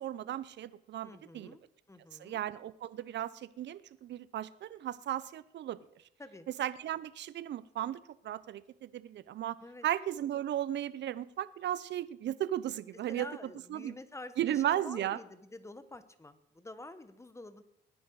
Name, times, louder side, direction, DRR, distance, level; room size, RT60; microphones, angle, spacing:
voice 1, 0.0-1.6 2.2-5.8 6.6-9.6 9.8-13.3 13.7-14.0 14.4-15.2, right 12 dB, 65° right, 17 dB, 0.7 m, -35 dB
voice 2, 1.0-1.6 1.9-2.4 6.2-6.5 9.6-9.9 13.1-17.6, left 2 dB, 15° left, 11 dB, 1.3 m, -48 dB
20.0 x 10.0 x 4.8 m, 0.76 s
cardioid pair, 90°, 20 cm